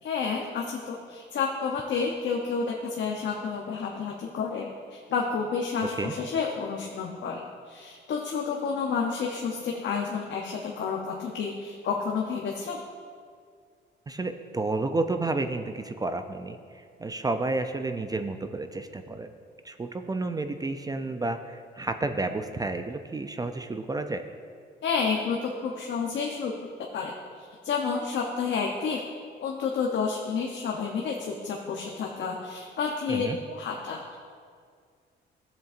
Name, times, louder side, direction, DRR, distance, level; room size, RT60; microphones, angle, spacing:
voice 1, 0.0-12.8 24.8-26.5 26.9-27.1 27.4-29.0 29.4-34.2, left 5 dB, 65° left, 0 dB, 0.8 m, -30 dB
voice 2, 14.1-16.6 17.0-19.3 19.6-24.2 33.1-33.4, right 2 dB, 20° right, 8 dB, 0.4 m, -31 dB
12.0 x 7.5 x 2.5 m, 2.1 s
cardioid pair, 90°, 20 cm